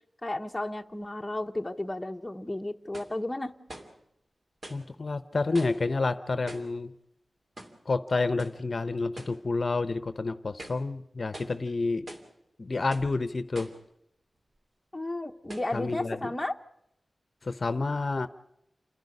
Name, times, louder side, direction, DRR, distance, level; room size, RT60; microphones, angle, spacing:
voice 1, 0.2-3.5 14.9-16.6, left 1 dB, 15° left, 4 dB, 1.1 m, -33 dB
sound 1, 1.9-2.0 2.9-3.2 3.7-4.0 4.6-4.9 5.5-5.9 6.5-6.8 7.6-7.9 8.4-8.6 9.2-9.4 9.9-10.0 10.5-10.9 11.3-11.6 12.1-12.3 12.9-13.2 13.5-13.9 14.6-14.7 15.5-15.8, right 1 dB, 50° right, 2.7 m, -44 dB
voice 2, 4.7-6.9 7.9-12.1 12.6-13.7 15.7-16.3 17.4-18.3, left 3 dB, 50° left, 12 dB, 0.8 m, -29 dB
28.5 x 10.5 x 9.7 m, 0.80 s
wide cardioid pair, 105°, 0 cm